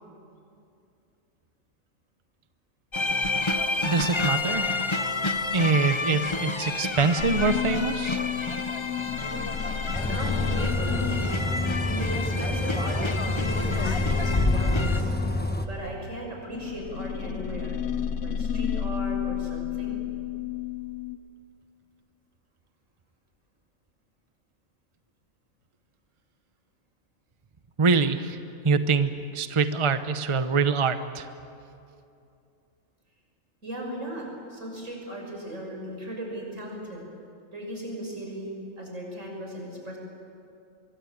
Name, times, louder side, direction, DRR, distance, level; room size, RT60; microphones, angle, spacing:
sound 1, 2.9-15.0, left 3 dB, 25° left, 1.0 m, -29 dB
voice 1, 3.8-4.9 5.5-8.2 27.8-28.4 28.6-31.3, right 4 dB, 30° right, 10 dB, 0.8 m, -24 dB
sound 2, 7.2-15.9 16.5-21.2, left 8 dB, 80° left, 1.2 m, -32 dB
Bus, 9.9-15.7, left 1 dB, 10° left, 1.1 m, -29 dB
voice 2, 10.0-11.3 11.8-15.1 15.7-17.8 18.2-20.0 33.6-37.1 37.5-40.0, right 1 dB, 80° right, 0 dB, 6.7 m, -36 dB
25.0 x 23.0 x 8.7 m, 2.6 s
omnidirectional pair, 1.3 m